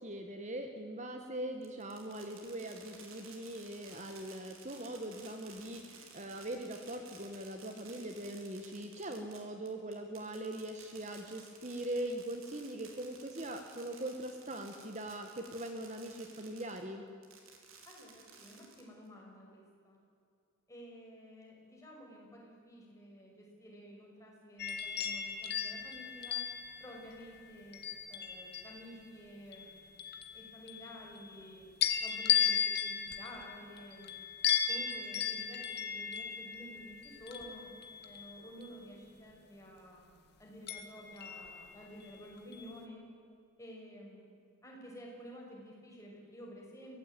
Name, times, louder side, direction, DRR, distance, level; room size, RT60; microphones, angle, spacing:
voice 1, 0.0-17.0, right 1 dB, 35° right, 5 dB, 1.5 m, -41 dB
Fireworks, 1.6-16.8 17.2-19.1, right 5 dB, 80° right, 4.1 m, -55 dB
voice 2, 17.9-20.0 20.7-26.4 26.8-27.8 28.1-29.9 30.3-31.7 32.0-34.2 34.7-37.7 38.0-43.0 43.6-44.3 44.6-47.0, equal, 15° left, -2 dB, 6.2 m, -51 dB
sound 1, 24.6-29.0 29.5-31.4 31.8-38.8 40.7-42.1 42.5-42.8, left 8 dB, 50° left, 1.8 m, -36 dB
24.0 x 18.0 x 9.2 m, 2.4 s
head